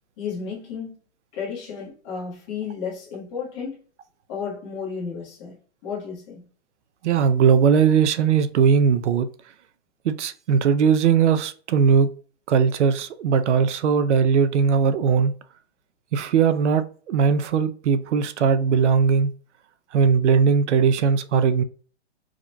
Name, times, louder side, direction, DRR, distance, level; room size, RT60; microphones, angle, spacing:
voice 1, 0.2-0.9 1.3-3.8 4.3-5.6 5.8-6.5, left 6 dB, 25° left, 1.3 m, -32 dB
voice 2, 7.0-9.3 10.0-12.1 12.5-15.3 16.1-19.3 19.9-21.6, right 6 dB, 80° right, 0.6 m, -19 dB
4.8 x 2.9 x 2.2 m
hypercardioid pair, 175°, 34 cm